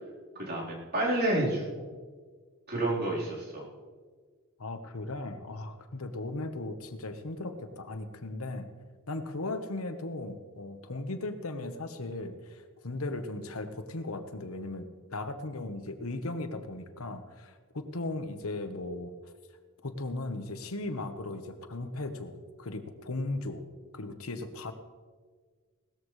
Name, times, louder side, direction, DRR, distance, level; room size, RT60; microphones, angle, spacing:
voice 1, 0.4-1.9 2.7-3.6, right 1 dB, 50° right, -4 dB, 4.0 m, -29 dB
voice 2, 4.6-8.7 9.1-19.1 19.8-23.6 23.9-24.7, left 2 dB, 90° left, 8 dB, 1.2 m, -37 dB
18.5 x 13.5 x 3.3 m, 1.5 s
head